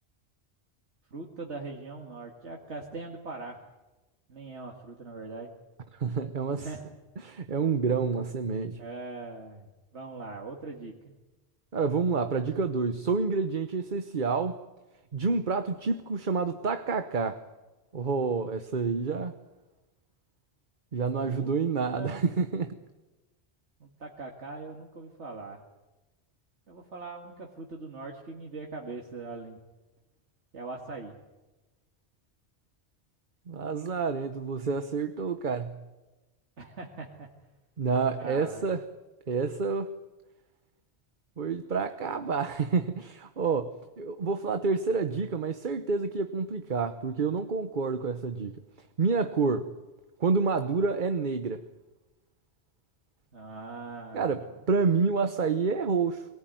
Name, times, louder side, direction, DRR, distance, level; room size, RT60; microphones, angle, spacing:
voice 1, 1.1-3.6 4.3-5.5 6.6-6.9 8.8-11.1 21.2-21.5 21.9-22.3 23.8-25.6 26.7-29.6 30.5-31.2 36.6-37.3 38.2-38.7 53.3-54.5, right 3 dB, 90° right, 0 dB, 2.4 m, -41 dB
voice 2, 5.9-6.7 7.2-8.8 11.7-14.6 15.1-17.4 17.9-19.3 20.9-22.8 33.5-35.8 37.8-38.8 39.3-39.9 41.4-43.7 44.0-48.5 49.0-49.7 50.2-51.6 54.1-56.3, right 4 dB, 50° right, 9 dB, 1.1 m, -28 dB
24.0 x 18.5 x 9.3 m, 1.1 s
omnidirectional pair, 1.1 m